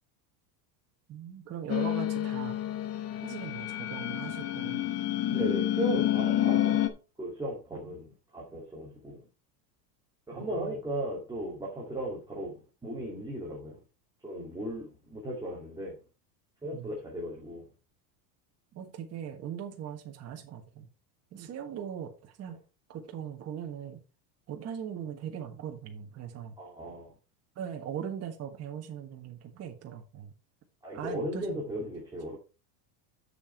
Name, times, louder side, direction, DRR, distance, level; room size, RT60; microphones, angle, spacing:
voice 1, 1.1-2.6 3.2-4.8 7.9-8.0 10.3-10.8 16.7-16.9 18.7-20.9 21.3-22.6 22.9-24.0 24.5-26.5 27.5-30.3 30.9-31.9, right 9 dB, 30° right, 1.5 m, -40 dB
sound 1, 1.7-6.9, left 12 dB, 30° left, 0.9 m, -29 dB
voice 2, 5.3-6.9 7.2-8.1 8.3-9.2 10.3-12.5 12.8-13.8 14.2-16.0 16.6-17.7 22.5-22.6 26.6-27.1 30.8-32.4, right 1 dB, 10° right, 2.5 m, -36 dB
7.1 x 6.9 x 4.4 m
supercardioid pair, 145°, 48 cm